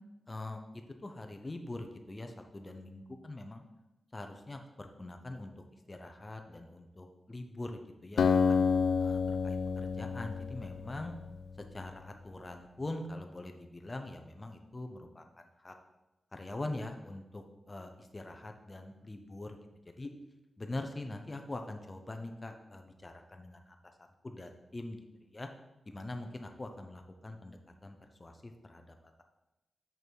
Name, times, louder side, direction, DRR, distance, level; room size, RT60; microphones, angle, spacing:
voice 1, 0.3-3.6 4.1-5.5 5.9-8.6 9.0-11.1 11.7-15.7 16.3-19.6 19.9-20.1 20.6-23.8 24.2-25.5 25.9-29.2, left 2 dB, 20° left, 5 dB, 0.7 m, -43 dB
Acoustic guitar, 8.2-11.8, left 5 dB, 80° left, 0.4 m, -29 dB
6.3 x 5.5 x 4.6 m, 0.98 s
wide cardioid pair, 145°, 0 cm